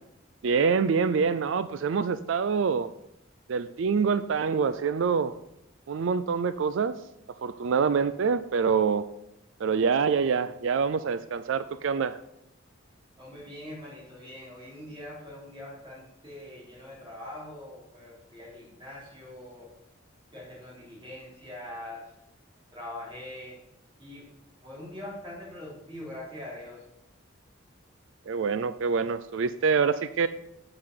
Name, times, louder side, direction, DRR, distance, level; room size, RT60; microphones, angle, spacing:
voice 1, 0.4-2.9 3.5-5.3 5.9-6.9 7.4-9.1 9.6-12.2 28.3-30.3, right 5 dB, 70° right, 13 dB, 0.4 m, -25 dB
voice 2, 13.2-19.7 20.3-22.1 22.7-23.6 24.0-26.9, left 1 dB, 25° right, -6 dB, 3.3 m, -43 dB
7.9 x 5.7 x 6.6 m, 0.80 s
head